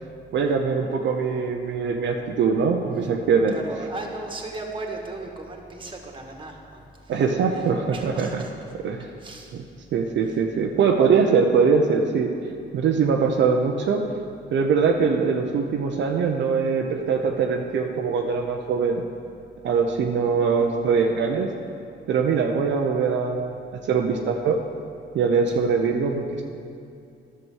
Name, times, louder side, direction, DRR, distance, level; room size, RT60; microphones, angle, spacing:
voice 1, 0.3-3.5 7.1-8.4 8.8-9.1 9.9-12.3 12.7-14.0 14.5-19.0 19.6-21.5 22.1-24.6 25.1-26.4, right 5 dB, 65° right, 2 dB, 0.8 m, -22 dB
voice 2, 3.5-7.1 7.5-7.6 7.9-8.5 9.2-9.6, right 2 dB, 25° right, 1 dB, 1.8 m, -36 dB
11.0 x 6.9 x 6.4 m, 2.5 s
cardioid pair, 90°, 20 cm